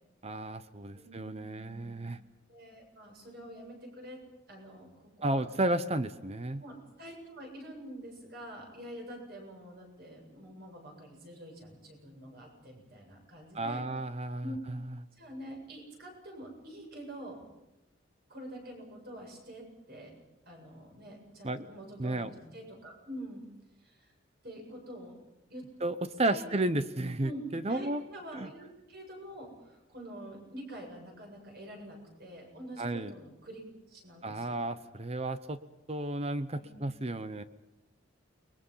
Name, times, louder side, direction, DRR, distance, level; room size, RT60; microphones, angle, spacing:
voice 1, 0.2-2.2 5.2-6.6 13.5-14.8 21.4-21.6 22.0-22.3 25.8-28.0 28.3-28.5 32.8-33.1 34.2-35.6 35.9-37.4, right 2 dB, 30° right, 12 dB, 0.8 m, -33 dB
voice 2, 0.9-2.0 2.5-4.2 4.5-4.9 5.2-5.4 6.6-13.8 14.4-14.6 15.2-17.4 18.3-20.1 20.5-23.4 23.8-24.1 24.4-25.1 25.5-25.6 26.3-26.4 27.2-27.4 27.7-33.6 33.9-34.6 36.6-36.8, equal, 50° right, 1 dB, 7.6 m, -46 dB
29.5 x 21.5 x 5.7 m, 0.94 s
head